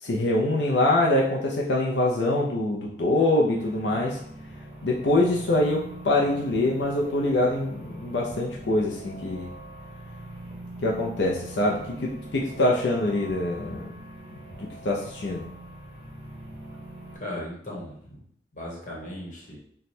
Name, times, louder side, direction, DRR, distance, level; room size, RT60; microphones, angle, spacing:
voice 1, 0.0-4.2 4.8-9.5 10.8-13.9 14.3-15.4, left 2 dB, 85° left, -2 dB, 0.6 m, -24 dB
sound 1, 3.5-17.2, right 1 dB, 40° right, 1.5 m, -42 dB
voice 2, 17.2-18.2 18.5-19.6, left 1 dB, 45° left, -4 dB, 1.1 m, -37 dB
3.2 x 2.3 x 4.2 m, 0.65 s
head